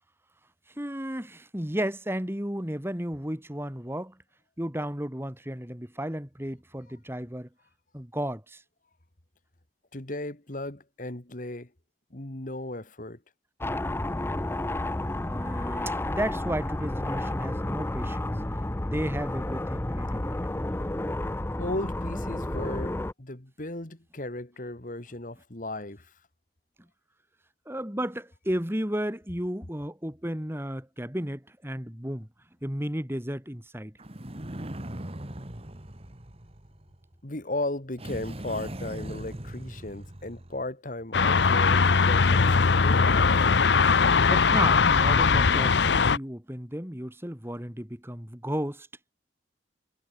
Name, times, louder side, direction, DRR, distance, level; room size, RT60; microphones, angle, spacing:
voice 1, 0.8-4.2 4.6-7.5 7.9-8.6 15.2-18.3 18.8-20.4 27.7-32.3 32.6-33.9 44.2-48.9, equal, 15° right, 2.8 m, -33 dB
voice 2, 9.9-11.7 12.1-13.2 21.6-26.1 37.2-43.3, left 2 dB, 50° left, 2.2 m, -36 dB
sound 1, 13.6-23.1, left 1 dB, 15° left, 0.5 m, -31 dB
sound 2, 34.0-37.1 38.0-40.7, right 1 dB, 35° right, 2.2 m, -40 dB
sound 3, 41.1-46.2, left 5 dB, 80° left, 0.8 m, -20 dB
head